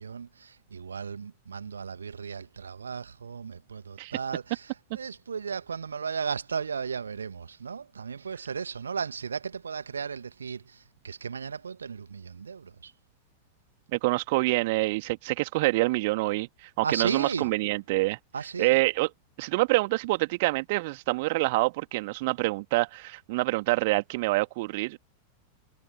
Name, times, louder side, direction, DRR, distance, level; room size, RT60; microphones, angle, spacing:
voice 1, 0.0-12.9 16.8-17.5 18.3-18.8, right 6 dB, 70° right, 2.1 m, -35 dB
voice 2, 13.9-18.2 18.6-19.1 19.4-25.0, right 22 dB, 50° right, 2.3 m, -26 dB
figure-of-eight pair, 90°, 0 cm